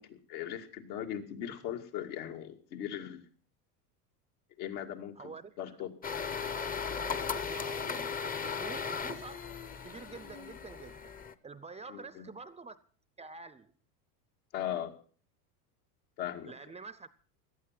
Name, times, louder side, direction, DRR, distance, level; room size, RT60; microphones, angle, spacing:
voice 1, 0.0-3.2 4.6-5.3 5.6-5.9 11.9-12.2 14.5-14.9 16.2-16.5, left 10 dB, 70° left, 2.6 m, -39 dB
voice 2, 5.2-5.6 6.5-9.6 9.8-11.0 11.4-12.8 13.2-13.7 16.5-17.1, right 4 dB, 15° right, 0.6 m, -47 dB
sound 1, 6.0-11.3, left 6 dB, 20° left, 0.8 m, -37 dB
17.5 x 12.0 x 5.9 m
supercardioid pair, 115°, 47 cm